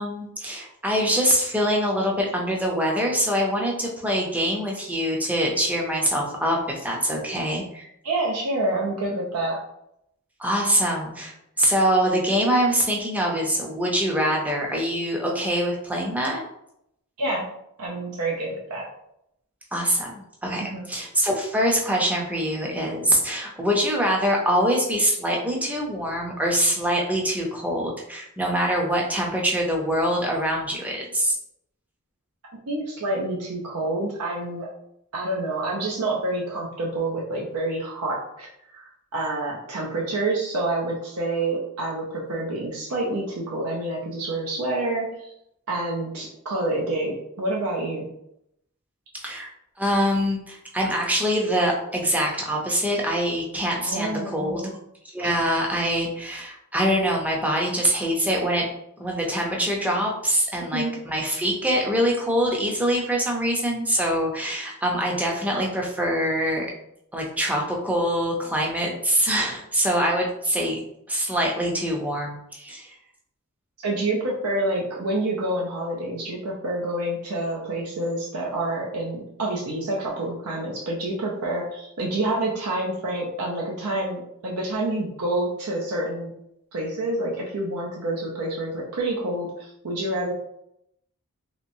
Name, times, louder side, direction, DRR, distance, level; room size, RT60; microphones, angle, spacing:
voice 1, 0.0-7.9 10.4-16.4 19.7-20.1 20.4-31.4 49.2-49.5 49.8-54.6 55.1-58.7 59.0-66.7 67.1-70.8 71.1-72.9, equal, 5° right, -1 dB, 0.6 m, -24 dB
voice 2, 8.0-9.6 17.2-17.5 17.8-18.9 20.6-20.9 32.7-34.7 35.1-45.1 45.7-48.1 53.8-54.7 55.2-55.3 60.7-60.9 73.8-86.3 86.7-90.3, right 2 dB, 80° right, -2 dB, 0.6 m, -28 dB
3.1 x 2.9 x 2.6 m, 0.78 s
head